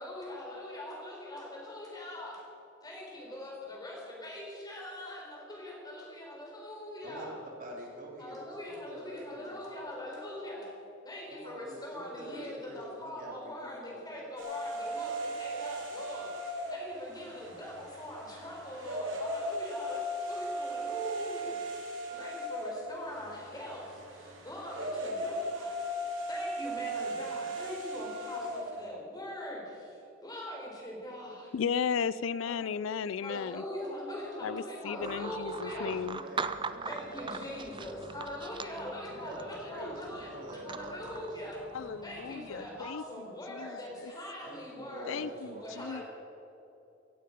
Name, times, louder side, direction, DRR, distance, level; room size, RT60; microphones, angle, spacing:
voice 1, 0.0-2.5 2.8-7.4 8.2-10.7 11.0-21.6 22.1-25.7 26.3-31.5 32.4-32.6 33.2-36.0 36.8-41.6 42.0-45.2 45.6-46.0, left 1 dB, 20° left, 4.1 m, -42 dB
voice 2, 7.6-8.4 8.7-10.5 11.3-14.6 35.6-38.0 39.1-41.2 44.4-45.9, right 1 dB, 45° right, 3.4 m, -46 dB
sound 1, 14.4-28.8, right 1 dB, 75° right, 3.0 m, -37 dB
voice 3, 31.5-33.6 34.4-36.2 41.7-43.0 43.5-44.1 45.1-46.0, left 6 dB, 80° left, 0.4 m, -35 dB
sound 2, 35.0-42.9, right 4 dB, 25° right, 0.6 m, -42 dB
17.0 x 15.5 x 5.2 m
head